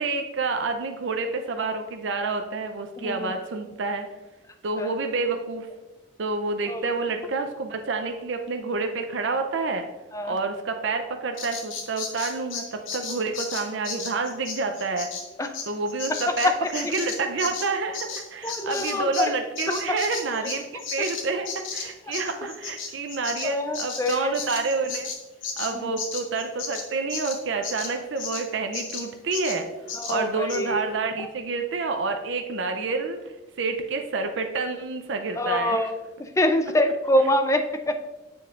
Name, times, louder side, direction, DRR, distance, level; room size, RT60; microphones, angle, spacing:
voice 1, 0.0-4.1 4.6-5.7 6.2-9.8 10.2-15.1 15.7-25.1 25.6-29.7 30.1-33.2 33.6-35.9, right 3 dB, 65° right, 5 dB, 0.5 m, -28 dB
voice 2, 3.0-3.3 4.8-4.9 6.7-6.8 10.1-10.3 15.4-15.5 16.3-16.7 18.4-19.3 19.9-20.0 21.0-21.1 23.4-24.4 25.7-25.9 30.0-30.9 35.4-35.9 36.2-37.9, left 1 dB, 15° left, 7 dB, 0.4 m, -25 dB
Bird vocalization bird call bird song, 11.4-19.3 19.5-28.4 28.7-29.1 29.3-29.6 29.9-30.2 30.5-30.6, left 5 dB, 80° left, 1.0 m, -34 dB
7.1 x 6.9 x 2.5 m, 1.1 s
head